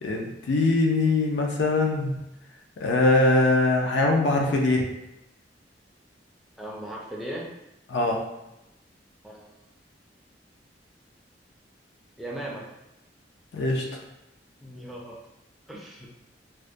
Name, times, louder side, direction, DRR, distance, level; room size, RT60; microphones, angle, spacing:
voice 1, 0.0-2.1 2.8-4.8 7.9-8.2 13.5-13.8, left 2 dB, 70° left, 1 dB, 0.4 m, -22 dB
voice 2, 6.6-7.4 9.2-9.6 12.2-12.6 14.6-15.2 15.7-16.1, right 1 dB, ahead, -4 dB, 0.4 m, -37 dB
2.2 x 2.1 x 2.5 m, 0.90 s
head